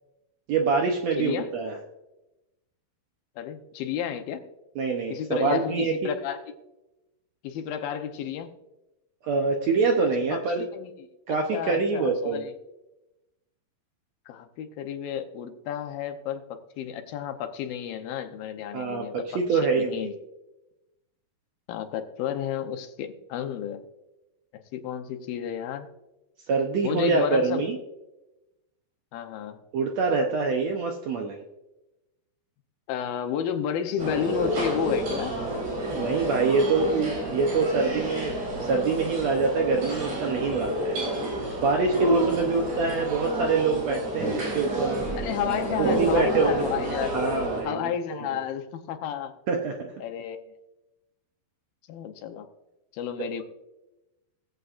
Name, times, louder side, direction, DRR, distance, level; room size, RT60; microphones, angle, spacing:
voice 1, 0.5-1.8 4.8-5.9 9.2-10.6 11.3-12.4 18.7-20.1 26.5-27.8 29.7-31.4 35.9-38.3 38.6-41.0 41.6-45.1 45.8-46.7 47.1-47.8 49.5-49.8, right 4 dB, 75° right, 1 dB, 1.6 m, -25 dB
voice 2, 1.2-1.5 3.4-4.4 5.1-6.4 7.4-8.5 10.2-10.9 11.3-12.5 14.3-19.1 19.5-20.1 21.7-23.8 24.5-25.9 26.8-27.6 29.1-29.6 32.9-35.3 45.1-47.2 47.6-49.3 50.0-50.4 51.9-52.5 52.9-53.4, left 9 dB, 85° left, 6 dB, 2.7 m, -32 dB
sound 1, 34.0-47.6, right 1 dB, 90° right, 5.7 m, -29 dB
20.0 x 7.9 x 2.5 m, 0.97 s
omnidirectional pair, 4.1 m